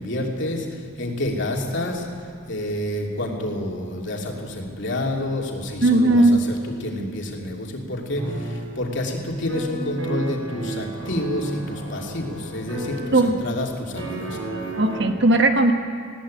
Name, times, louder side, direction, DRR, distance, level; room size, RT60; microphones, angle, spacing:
voice 1, 0.0-2.1 2.5-14.4, left 1 dB, 60° left, 0 dB, 3.0 m, -28 dB
voice 2, 5.8-6.4 13.1-13.4 14.8-15.7, right 2 dB, 55° right, 6 dB, 1.3 m, -17 dB
sound 1, 8.2-8.7 9.5-13.7 14.0-15.1, right 2 dB, 75° right, 6.1 m, -33 dB
20.0 x 16.5 x 8.7 m, 2.2 s
head